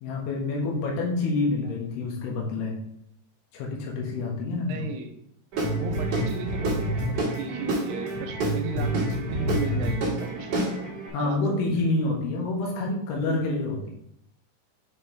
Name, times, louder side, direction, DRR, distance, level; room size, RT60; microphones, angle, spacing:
voice 1, 0.0-2.8 3.5-4.9 11.1-13.9, left 3 dB, 80° left, -1 dB, 3.2 m, -27 dB
voice 2, 1.6-1.9 4.7-5.2 5.7-10.7 11.2-11.9, right 5 dB, 80° right, 6 dB, 2.7 m, -36 dB
Guitar / Drum, 5.5-11.1, right 1 dB, 50° right, 2.1 m, -27 dB
7.0 x 4.5 x 3.5 m, 0.71 s
omnidirectional pair, 4.7 m